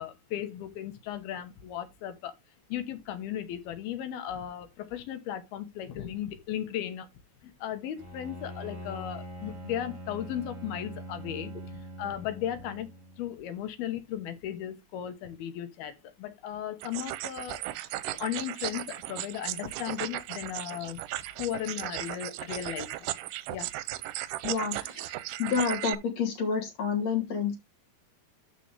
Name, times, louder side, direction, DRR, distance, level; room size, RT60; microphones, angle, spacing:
voice 1, 0.0-2.3 2.7-7.1 7.4-12.9 13.2-17.6 18.2-21.0 21.4-23.1 23.5-23.7, left 10 dB, 75° left, 3.0 m, -36 dB
Bowed string instrument, 8.0-13.3, right 1 dB, 30° right, 1.4 m, -43 dB
sound 1, 16.8-25.9, right 16 dB, 90° right, 2.8 m, -36 dB
voice 2, 24.4-25.1 25.4-27.6, left 6 dB, 55° left, 2.0 m, -29 dB
13.0 x 5.0 x 3.5 m
omnidirectional pair, 4.7 m